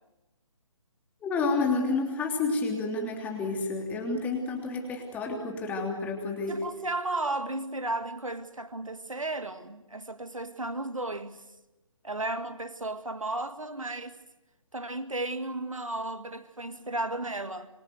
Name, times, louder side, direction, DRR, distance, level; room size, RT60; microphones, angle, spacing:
voice 1, 1.2-6.6, left 3 dB, 10° left, 3.1 m, -30 dB
voice 2, 6.5-11.4 12.0-14.2 14.7-17.7, right 2 dB, 75° right, 2.1 m, -34 dB
27.0 x 23.5 x 8.0 m
figure-of-eight pair, 140°, 17 cm